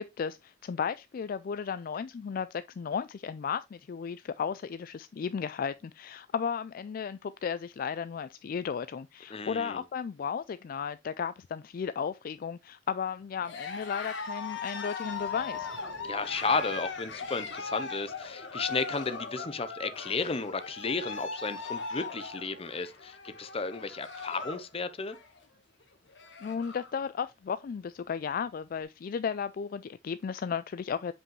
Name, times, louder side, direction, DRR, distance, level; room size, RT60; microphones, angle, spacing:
voice 1, 0.0-15.7 26.4-31.1, left 6 dB, 50° left, 0.3 m, -34 dB
voice 2, 9.3-9.8 16.0-25.2, left 4 dB, 30° left, 0.7 m, -33 dB
Cheering, 13.4-24.7 25.0-25.4 25.8-25.9 26.1-26.9, left 4 dB, 75° left, 1.4 m, -39 dB
sound 1, 15.0-19.0, right 2 dB, 60° right, 2.0 m, -57 dB
7.5 x 5.2 x 3.1 m
head